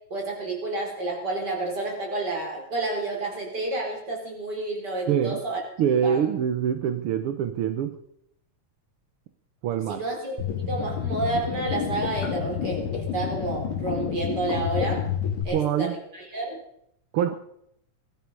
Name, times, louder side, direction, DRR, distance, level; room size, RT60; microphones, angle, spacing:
voice 1, 0.1-5.6 6.0-6.2 9.9-15.1 15.4-16.6, right 2 dB, 35° right, 0 dB, 4.8 m, -30 dB
voice 2, 5.1-5.4 5.8-8.0 9.6-10.0 15.5-15.9 17.1-17.3, right 8 dB, 65° right, 9 dB, 1.4 m, -24 dB
sound 1, 10.4-15.4, left 8 dB, 80° left, 3.6 m, -29 dB
19.5 x 13.0 x 5.5 m, 0.72 s
omnidirectional pair, 3.4 m